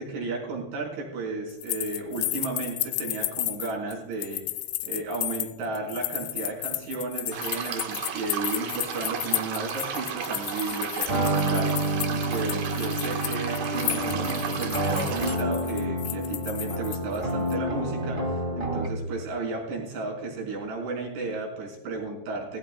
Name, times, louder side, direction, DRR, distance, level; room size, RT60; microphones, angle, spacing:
voice 1, 0.0-4.4 4.8-22.6, right 3 dB, 75° right, -3 dB, 7.1 m, -33 dB
sound 1, 1.5-17.2 17.5-17.6, left 17 dB, 90° left, 3.2 m, -33 dB
sound 2, 7.3-15.4, right 6 dB, 60° right, 2.5 m, -34 dB
sound 3, 11.1-19.1, right 1 dB, 45° right, 0.7 m, -29 dB
19.5 x 16.5 x 2.3 m, 1.0 s
omnidirectional pair, 5.4 m